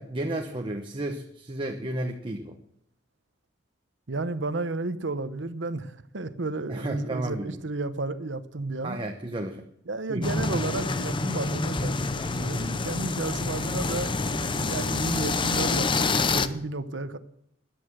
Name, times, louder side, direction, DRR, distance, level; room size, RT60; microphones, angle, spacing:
voice 1, 0.0-2.6 6.7-7.6 8.8-9.6 10.1-10.2, right 1 dB, 30° right, 1.0 m, -32 dB
voice 2, 4.1-9.0 9.9-17.2, right 2 dB, 75° right, 1.0 m, -32 dB
sound 1, 10.2-16.5, left 3 dB, 25° left, 0.7 m, -27 dB
14.5 x 10.5 x 6.4 m
head